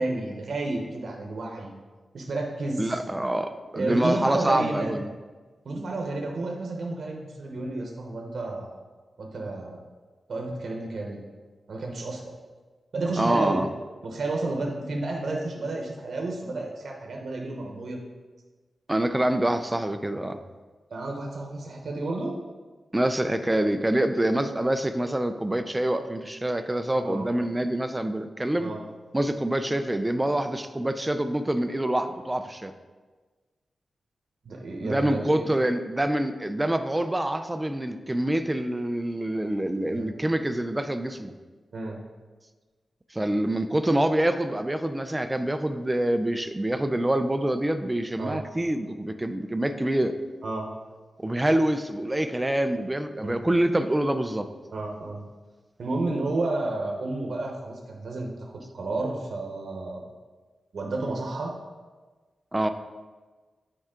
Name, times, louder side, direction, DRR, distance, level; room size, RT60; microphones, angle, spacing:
voice 1, 0.0-1.7 2.1-2.9 3.7-5.0 5.6-8.7 9.2-9.8 10.3-11.2 11.7-12.3 12.9-13.6 14.0-18.0 20.9-22.4 27.0-27.3 28.6-28.8 34.4-35.5 39.9-40.0 41.7-42.0 48.2-48.4 50.4-50.7 53.2-53.3 54.7-55.2 55.8-60.0 60.7-61.5, right 2 dB, 70° right, 1 dB, 0.9 m, -31 dB
voice 2, 2.8-5.1 13.2-13.7 18.9-20.4 22.9-28.7 29.1-32.7 34.8-41.3 43.1-50.1 51.2-54.5 62.5-62.7, right 1 dB, 15° right, 8 dB, 0.4 m, -26 dB
9.0 x 4.6 x 3.7 m, 1.3 s
wide cardioid pair, 130°, 0 cm